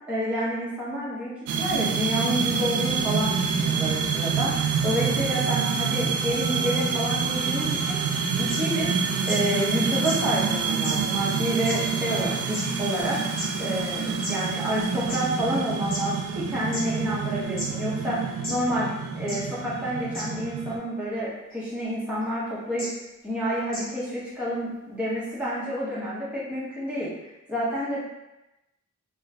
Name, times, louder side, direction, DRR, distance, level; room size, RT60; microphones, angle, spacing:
voice 1, 0.1-4.5 4.8-8.0 8.3-8.9 9.3-18.9 19.1-22.9 23.2-27.1 27.5-28.0, equal, 5° right, -9 dB, 0.8 m, -29 dB
sound 1, 1.5-20.8, right 5 dB, 80° right, 0.3 m, -27 dB
sound 2, 8.5-8.6 9.3-9.4 10.0-10.2 10.8-10.9 11.7-11.8 12.5-12.6 13.4-13.5 14.2-14.3 15.1-15.2 15.9-16.0 16.7-16.8 17.6-17.7 18.4-18.5 19.3-19.4 20.1-20.2 21.5-21.7 22.8-22.9 23.7-23.8, left 1 dB, 45° left, 1.1 m, -32 dB
2.5 x 2.3 x 3.1 m, 0.95 s
head